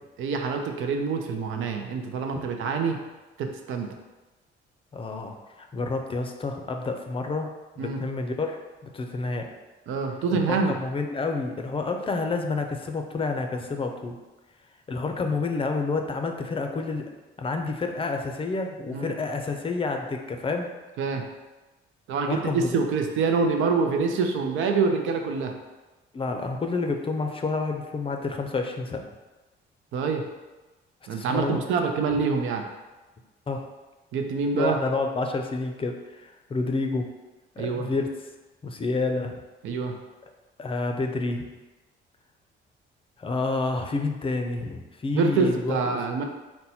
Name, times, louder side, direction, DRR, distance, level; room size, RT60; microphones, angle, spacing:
voice 1, 0.2-3.0 3.4-3.9 7.8-8.0 9.9-10.8 18.9-19.1 21.0-21.3 22.1-25.6 29.9-30.2 31.1-32.7 34.1-34.8 37.6-37.9 39.6-39.9 45.1-46.2, right 4 dB, 85° right, 4 dB, 0.5 m, -26 dB
voice 2, 4.9-7.5 7.8-8.6 8.8-9.5 10.5-14.2 14.9-17.1 17.4-20.7 22.2-22.8 26.1-29.1 31.1-31.6 33.5-33.7 34.5-37.1 37.6-38.1 38.6-39.3 40.6-41.5 43.2-46.0, left 3 dB, 25° left, 4 dB, 0.5 m, -29 dB
4.1 x 2.2 x 4.1 m, 1.1 s
cardioid pair, 90°, 20 cm